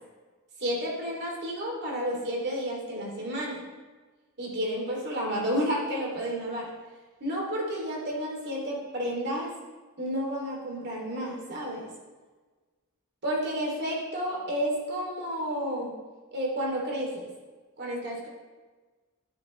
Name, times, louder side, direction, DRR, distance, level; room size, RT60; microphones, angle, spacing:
voice 1, 0.6-3.6 4.4-6.7 7.2-9.5 10.0-11.9 13.2-15.9 16.3-17.3 17.8-18.3, equal, 50° right, -2 dB, 2.9 m, -31 dB
10.5 x 9.8 x 3.2 m, 1.3 s
head